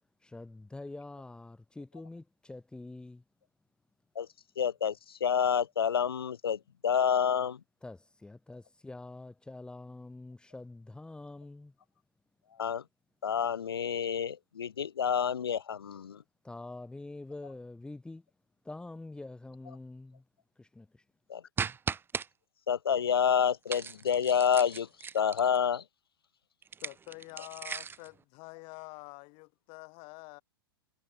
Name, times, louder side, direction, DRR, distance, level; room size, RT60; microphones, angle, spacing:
voice 1, 0.2-3.2 7.8-11.7 16.4-18.2 18.6-20.2 20.6-21.0, left 2 dB, 5° left, 3.2 m, -45 dB
voice 2, 4.6-7.6 12.6-12.8 13.2-16.2 21.3-21.4 22.7-24.9 25.1-25.8, left 8 dB, 90° left, 0.4 m, -28 dB
sound 1, 21.6-22.3 23.7-25.6 26.6-28.1, right 6 dB, 15° right, 1.3 m, -37 dB
voice 3, 26.8-30.4, left 31 dB, 45° left, 2.4 m, -47 dB
hypercardioid pair, 100°, 12 cm